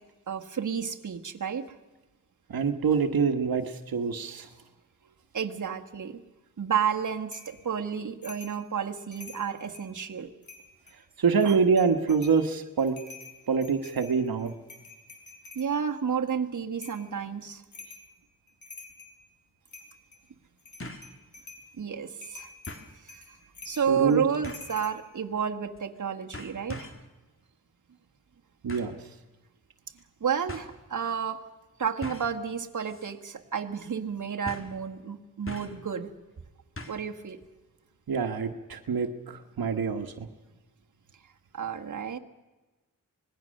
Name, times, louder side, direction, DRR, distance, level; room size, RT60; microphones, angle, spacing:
voice 1, 0.3-1.6 5.3-6.2 6.6-10.3 11.4-11.6 15.5-17.6 21.8-22.5 23.0-23.2 23.6-26.9 30.2-31.5 31.8-36.1 36.9-37.4 41.5-42.2, right 7 dB, 60° right, 3 dB, 1.6 m, -31 dB
voice 2, 2.5-4.5 11.2-13.0 13.5-14.5 23.9-24.2 28.6-29.0 38.1-40.3, right 5 dB, 85° right, 7 dB, 1.4 m, -25 dB
sound 1, 7.3-7.6 8.2-8.6 9.0-9.9 10.4-11.0 11.4-12.4 12.8-15.7 16.8-17.1 17.7-18.1 18.5-19.2 19.7-20.2 20.6-21.7 22.2-24.9, left 3 dB, 55° left, 4.2 m, -47 dB
sound 2, 18.9-19.0 20.8-21.1 21.6-21.7 22.7-22.9 24.4-24.8 25.7-26.0 26.3-27.1 28.7-29.0 30.0-30.1 30.5-30.7 32.0-32.4 32.9-33.1 33.4-33.5 34.4-34.8 35.5-35.8 36.8-37.1 37.4-37.5, left 1 dB, 35° left, 2.7 m, -41 dB
25.5 x 20.0 x 6.5 m, 1.2 s
wide cardioid pair, 95°, 35 cm